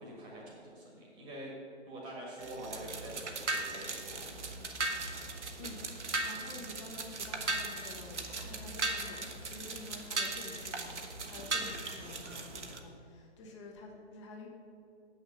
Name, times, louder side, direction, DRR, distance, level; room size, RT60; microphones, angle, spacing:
voice 1, 0.0-1.5 1.9-4.3 4.6-5.2, right 1 dB, 15° right, -3 dB, 1.5 m, -46 dB
sound 1, 2.4-12.8, right 3 dB, 75° right, 1.3 m, -38 dB
voice 2, 6.2-14.5, left 2 dB, 25° left, 0 dB, 1.3 m, -49 dB
8.0 x 6.4 x 6.7 m, 2.7 s
figure-of-eight pair, 145°, 36 cm